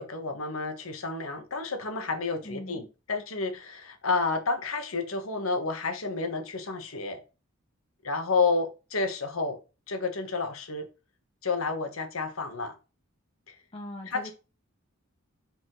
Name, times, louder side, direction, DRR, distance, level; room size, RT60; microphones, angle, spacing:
voice 1, 0.0-7.2 8.0-9.6 9.9-10.9 11.4-12.7 14.1-14.3, left 4 dB, 85° left, 1.3 m, -30 dB
voice 2, 2.3-2.9 13.7-14.3, left 1 dB, 30° left, 0.8 m, -40 dB
5.3 x 4.9 x 3.8 m
head